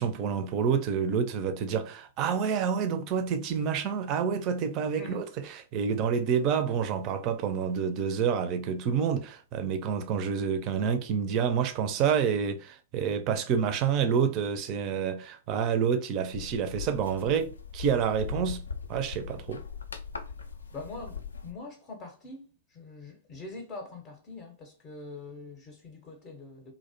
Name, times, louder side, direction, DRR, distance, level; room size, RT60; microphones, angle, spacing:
voice 1, 0.0-5.2 5.7-18.6 18.9-19.6, right 7 dB, 35° right, 0.4 m, -28 dB
sound 1, 16.3-21.5, left 6 dB, 75° left, 0.3 m, -40 dB
voice 2, 20.7-26.7, left 3 dB, 30° left, 0.6 m, -43 dB
2.5 x 2.1 x 2.5 m
figure-of-eight pair, 105°, 0 cm